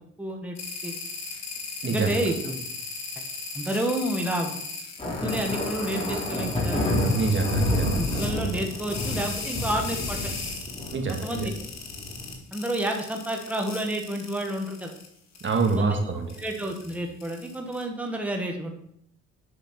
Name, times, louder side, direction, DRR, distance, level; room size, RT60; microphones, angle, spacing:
voice 1, 0.2-0.6 0.8-1.0 1.9-2.7 3.5-4.6 5.0-6.8 7.9-10.2 11.2-11.5 12.5-14.9 15.7-16.0 16.4-18.7, right 1 dB, 5° right, 2 dB, 1.6 m, -30 dB
sound 1, 0.5-15.1 15.3-15.8 16.3-17.8, left 4 dB, 60° left, 2.5 m, -37 dB
voice 2, 1.8-2.1 7.1-8.1 10.9-11.5 15.4-16.4, right 4 dB, 40° right, 3 dB, 1.9 m, -26 dB
sound 2, 5.0-12.3, left 1 dB, 20° left, 4.0 m, -29 dB
8.6 x 5.9 x 6.0 m, 0.71 s
cardioid pair, 90°, 30 cm